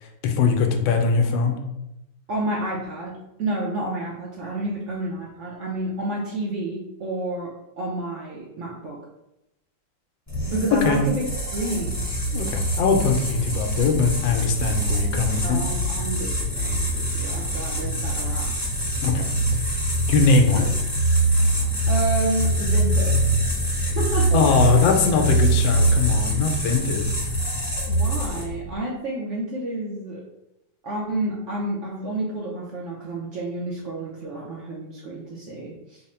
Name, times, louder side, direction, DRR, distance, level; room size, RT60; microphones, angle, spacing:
voice 1, 0.2-1.6 10.8-11.0 12.3-15.6 19.0-19.2 20.1-20.6 23.8-24.0 24.3-27.1, left 5 dB, 85° left, 4 dB, 1.3 m, -21 dB
voice 2, 2.3-3.1 3.4-7.5 7.8-9.0 10.5-11.2 11.5-12.0 15.4-18.7 20.5-20.7 21.3-21.4 21.9-23.2 24.0-24.4 27.9-30.2 30.8-36.0, right 1 dB, 85° right, -4 dB, 0.6 m, -30 dB
sound 1, 10.3-28.6, right 1 dB, 10° left, 1.0 m, -24 dB
3.6 x 2.1 x 4.2 m, 0.88 s
omnidirectional pair, 2.0 m